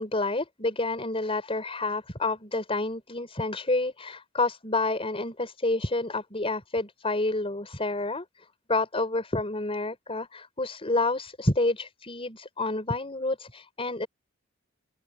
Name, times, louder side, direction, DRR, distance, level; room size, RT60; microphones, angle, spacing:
voice 1, 0.0-14.1, left 2 dB, 30° left, 5.3 m, -29 dB
open air
head